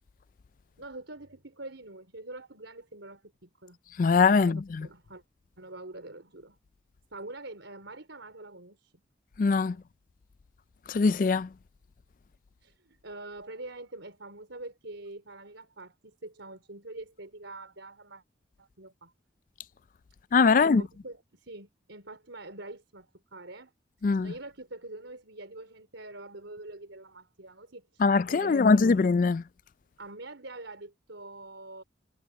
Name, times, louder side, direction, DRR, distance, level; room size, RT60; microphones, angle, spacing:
voice 1, 0.8-3.8 4.3-5.2 5.6-6.6 7.1-9.0 9.7-9.8 12.6-18.2 18.6-19.1 20.5-23.7 24.0-29.0 30.0-31.8, right 2 dB, 90° right, 4.5 m, -45 dB
voice 2, 4.0-4.9 9.4-9.8 10.9-11.5 20.3-20.8 24.0-24.3 28.0-29.4, left 4 dB, 45° left, 0.3 m, -22 dB
head